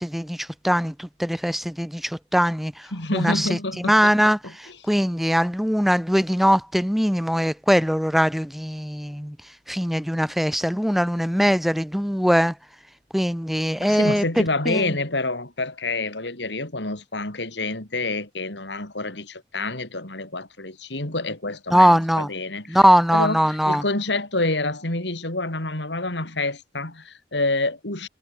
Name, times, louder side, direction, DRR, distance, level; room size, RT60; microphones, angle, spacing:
voice 1, 0.0-9.4 9.7-12.6 13.1-14.3 14.6-15.0 21.7-22.3 22.7-23.8, equal, ahead, 1.4 m, -21 dB
voice 2, 2.9-4.1 13.8-22.8 23.1-23.4 23.6-28.1, left 2 dB, 85° left, 4.5 m, -27 dB
head